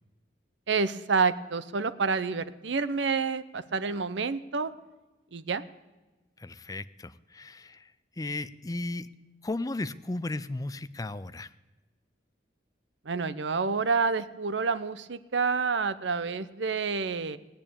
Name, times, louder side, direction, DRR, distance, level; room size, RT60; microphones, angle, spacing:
voice 1, 0.7-4.7 5.3-5.6 13.1-17.4, right 4 dB, 70° right, 14 dB, 0.7 m, -28 dB
voice 2, 6.4-9.1 9.4-11.5, left 2 dB, 20° left, 14 dB, 0.4 m, -35 dB
17.5 x 8.9 x 8.6 m, 1.2 s
head